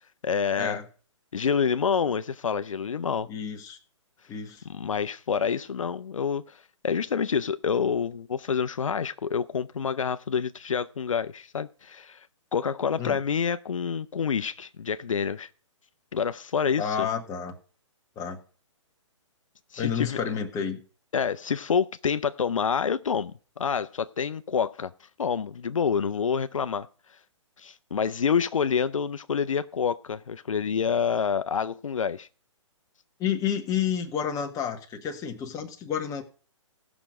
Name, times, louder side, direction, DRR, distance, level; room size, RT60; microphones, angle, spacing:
voice 1, 0.2-0.8 1.3-3.3 4.7-12.3 12.5-15.5 16.1-17.1 19.7-20.2 21.1-24.9 25.2-26.9 27.6-32.3, left 6 dB, 80° left, 0.6 m, -27 dB
voice 2, 3.3-3.8 4.3-4.6 13.0-13.2 16.8-17.6 18.1-18.4 19.8-20.8 33.2-36.2, left 8 dB, 20° left, 1.5 m, -30 dB
16.5 x 6.0 x 5.0 m
hypercardioid pair, 135°, 17 cm